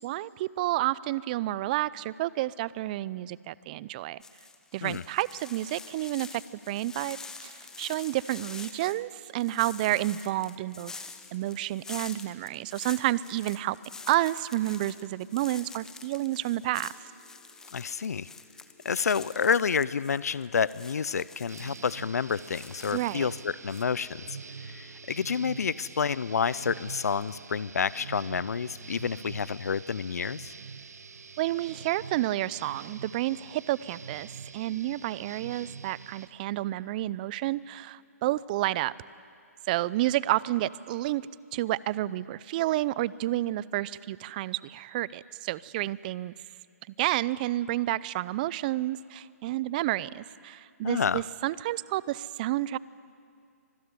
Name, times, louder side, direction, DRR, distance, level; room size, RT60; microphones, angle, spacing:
voice 1, 0.0-4.2 4.7-6.4 6.7-7.2 7.4-13.8 14.1-16.9 22.9-23.3 31.4-34.3 34.5-38.9 39.7-41.2 41.5-46.3 47.0-52.8, right 15 dB, 30° right, 20 dB, 0.5 m, -30 dB
sound 1, 4.2-23.4 23.7-23.8, left 4 dB, 5° left, 1.0 m, -46 dB
sound 2, 7.6-27.3, left 1 dB, 55° left, 5.1 m, -64 dB
voice 2, 17.7-18.3 18.8-30.5 50.8-51.2, left 6 dB, 75° left, 19 dB, 0.6 m, -29 dB
sound 3, 21.5-36.3, right 5 dB, 75° right, 1.5 m, -45 dB
25.5 x 20.5 x 9.7 m, 2.3 s
hypercardioid pair, 145°, 9 cm